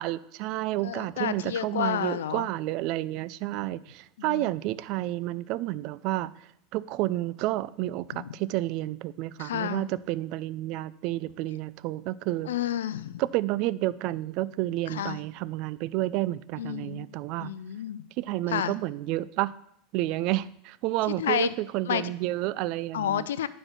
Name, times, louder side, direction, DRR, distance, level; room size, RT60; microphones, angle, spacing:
voice 1, 0.0-6.3 6.7-12.5 13.2-17.5 18.2-19.6 19.9-23.3, right 16 dB, 55° right, 18 dB, 0.4 m, -30 dB
voice 2, 0.8-2.5 4.2-4.5 8.1-8.3 9.4-9.9 12.5-13.2 14.9-15.2 16.6-17.1 17.4-18.0 18.5-18.7 21.2-21.5 21.9-22.0 22.9-23.5, left 10 dB, 80° left, 16 dB, 0.5 m, -30 dB
9.8 x 4.4 x 6.6 m, 0.70 s
hypercardioid pair, 90°, 0 cm